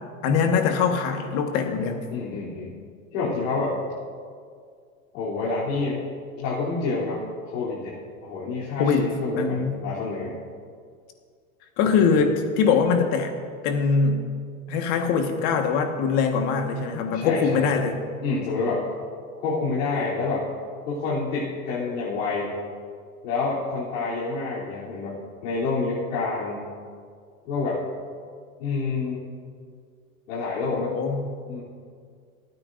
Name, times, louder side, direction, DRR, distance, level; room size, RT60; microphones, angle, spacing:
voice 1, 0.2-2.0 8.8-9.1 9.4-9.8 11.8-13.3 13.6-14.2 14.7-18.0 30.7-31.3, left 5 dB, 40° left, 4 dB, 1.5 m, -22 dB
voice 2, 2.1-2.7 3.1-3.7 5.1-6.0 6.4-7.2 7.5-8.0 8.2-10.3 11.8-12.1 17.1-17.7 18.2-18.8 19.4-20.4 20.8-22.5 23.2-26.6 27.4-27.8 28.6-29.2 30.3-30.9 31.5-31.6, left 4 dB, 60° left, -8 dB, 3.3 m, -28 dB
26.0 x 9.3 x 2.6 m, 2.1 s
supercardioid pair, 140°, 44 cm